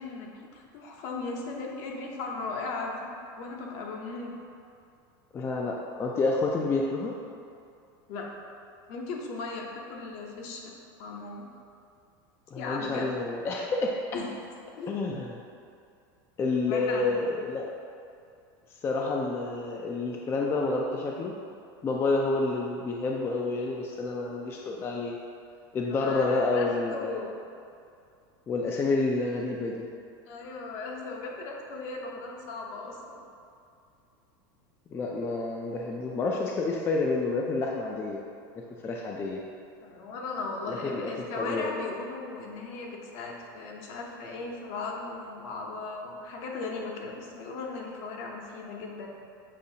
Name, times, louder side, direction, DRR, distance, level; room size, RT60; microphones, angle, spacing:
voice 1, 0.0-4.3 8.1-8.3 8.9-10.7 11.0-11.5 12.6-13.1 14.1-14.3 14.8-14.9 16.6-17.1 25.9-27.5 30.3-33.3 39.8-49.1, left 3 dB, 60° left, 0 dB, 0.8 m, -37 dB
voice 2, 5.3-7.1 12.5-13.9 14.9-15.4 16.4-17.7 18.8-21.4 21.8-25.2 25.7-27.3 28.5-29.9 34.9-38.2 38.6-39.4 40.7-41.8, left 3 dB, 20° left, -1 dB, 0.3 m, -29 dB
6.6 x 2.6 x 2.7 m, 2.5 s
supercardioid pair, 125°, 12 cm